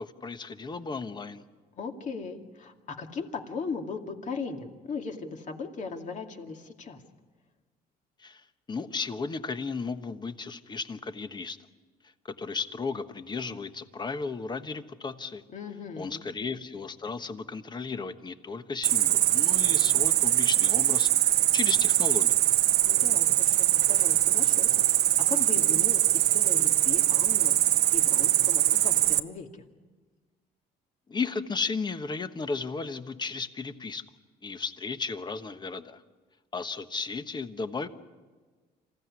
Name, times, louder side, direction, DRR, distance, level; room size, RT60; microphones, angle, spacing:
voice 1, 0.0-1.4 8.2-8.4 8.7-11.6 12.4-15.4 16.0-21.1 21.5-22.4 31.1-34.0 34.4-36.0 36.5-37.9, left 4 dB, 25° left, 10 dB, 1.2 m, -34 dB
voice 2, 1.7-7.0 15.5-16.2 22.9-27.6 27.9-29.6, left 5 dB, 45° left, 4 dB, 2.4 m, -38 dB
Cricket, 18.8-29.2, right 13 dB, 75° right, 0.8 m, -23 dB
27.0 x 15.5 x 9.7 m, 1.4 s
cardioid pair, 110°, 17 cm